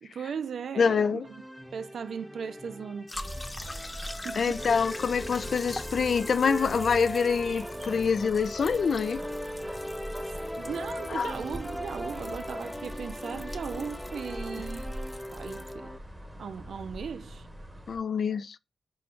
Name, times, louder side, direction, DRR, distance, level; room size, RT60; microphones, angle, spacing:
voice 1, 0.0-1.4 1.7-3.1 4.1-4.6 10.5-14.9 15.3-15.9 16.4-17.5, right 6 dB, 70° right, 0.4 m, -37 dB
voice 2, 0.8-1.3 4.4-9.2 11.1-11.3 17.9-18.6, left 6 dB, 65° left, 0.3 m, -26 dB
sound 1, 1.2-16.0, equal, 5° left, 0.6 m, -39 dB
sound 2, 3.1-15.7, left 2 dB, 25° left, 0.9 m, -45 dB
sound 3, 3.1-18.0, equal, 20° right, 1.1 m, -43 dB
4.3 x 3.8 x 2.5 m
supercardioid pair, 50°, 0 cm